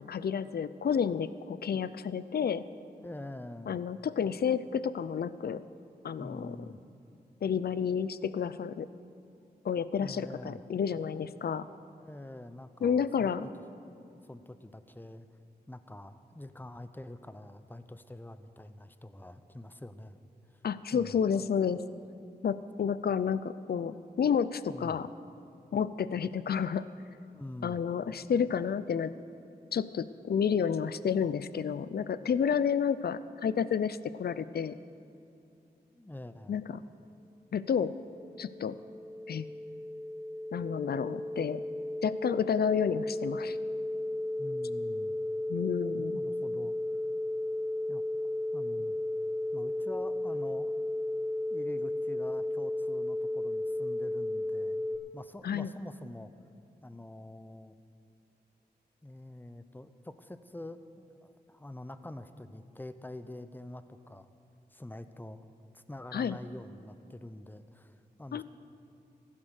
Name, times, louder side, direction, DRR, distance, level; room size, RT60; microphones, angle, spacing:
voice 1, 0.0-2.7 3.7-5.6 6.0-6.6 7.4-8.9 9.6-11.7 12.8-13.5 20.6-21.8 22.4-25.1 25.7-26.9 27.6-29.1 29.7-34.8 36.5-36.8 37.5-37.9 38.4-38.8 39.3-39.5 40.5-41.6 42.0-43.6 45.5-46.2 55.4-55.7 66.1-66.4 68.3-68.4, left 7 dB, 70° left, 15 dB, 0.5 m, -30 dB
voice 2, 3.0-3.8 6.2-6.8 10.0-10.6 12.0-13.5 14.1-15.3 15.7-20.2 20.5-20.6 20.9-21.2 24.7-25.0 27.3-27.8 35.9-36.6 44.4-45.2 46.0-46.8 47.9-48.0 48.5-49.0 49.5-50.7 51.5-54.8 55.1-56.3 56.8-57.8 59.0-64.3 64.7-65.5 65.7-68.4, left 1 dB, 10° left, 11 dB, 0.8 m, -46 dB
sound 1, 38.0-55.0, left 1 dB, 10° right, 3.3 m, -34 dB
15.5 x 11.5 x 6.5 m, 2.5 s
cardioid pair, 55°, 17 cm